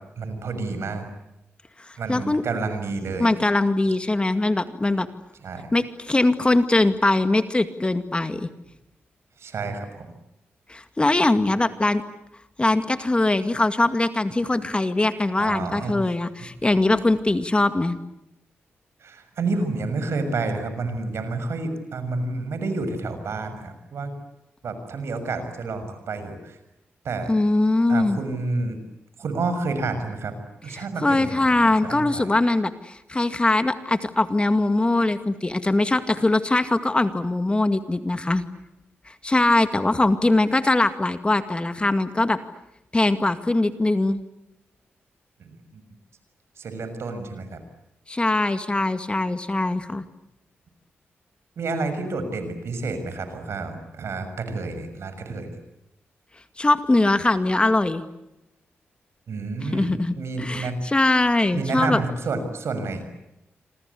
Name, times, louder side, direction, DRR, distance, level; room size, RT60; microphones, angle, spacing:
voice 1, 0.2-1.1 2.0-3.3 5.4-5.7 9.4-10.0 15.4-16.0 19.0-24.1 24.6-26.6 27.0-27.3 27.9-28.8 29.2-30.3 30.6-32.3 45.4-45.6 46.6-47.6 51.6-55.6 59.3-60.8 61.5-63.0, right 3 dB, 70° right, 9 dB, 6.4 m, -29 dB
voice 2, 1.8-2.4 3.2-5.1 5.7-8.5 10.7-12.0 12.6-18.0 27.3-28.2 30.7-38.4 39.1-42.4 42.9-44.2 48.1-50.0 56.6-58.0 59.6-62.0, left 2 dB, 25° left, 10 dB, 2.1 m, -22 dB
27.0 x 25.5 x 8.4 m, 0.89 s
cardioid pair, 65°, 5 cm